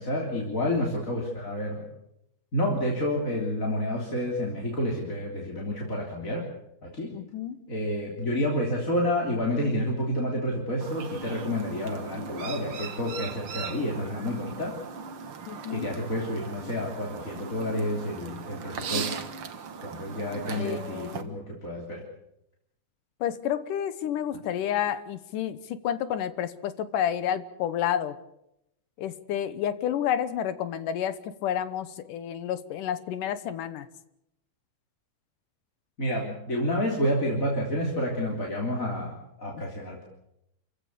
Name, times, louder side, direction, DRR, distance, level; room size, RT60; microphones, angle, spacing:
voice 1, 0.0-1.9 2.5-6.4 6.8-7.1 7.7-14.7 15.7-19.2 19.8-22.0 36.0-40.1, left 1 dB, 25° left, -2 dB, 3.6 m, -29 dB
voice 2, 7.1-7.7 15.5-15.9 20.5-21.3 23.2-28.2 29.0-33.9, left 10 dB, 80° left, 13 dB, 2.6 m, -30 dB
Chirp tweet, 10.8-21.2, right 5 dB, 50° right, 2.1 m, -38 dB
28.0 x 16.0 x 8.2 m, 0.81 s
omnidirectional pair, 3.7 m